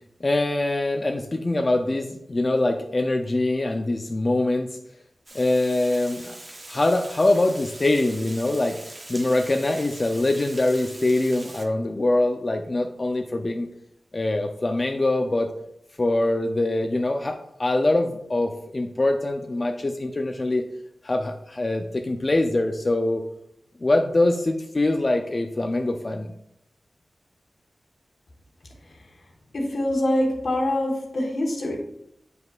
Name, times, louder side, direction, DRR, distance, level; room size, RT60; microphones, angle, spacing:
voice 1, 0.2-4.8 5.3-6.4 6.7-8.8 9.1-13.7 14.1-15.5 16.0-20.6 21.0-23.2 23.8-26.3, left 2 dB, 40° left, 4 dB, 0.4 m, -23 dB
Water, 5.3-11.7, right 1 dB, 35° right, 0.8 m, -42 dB
voice 2, 29.5-31.8, left 1 dB, 80° left, 0 dB, 1.4 m, -24 dB
7.8 x 5.3 x 2.4 m, 0.78 s
wide cardioid pair, 85°, 0 cm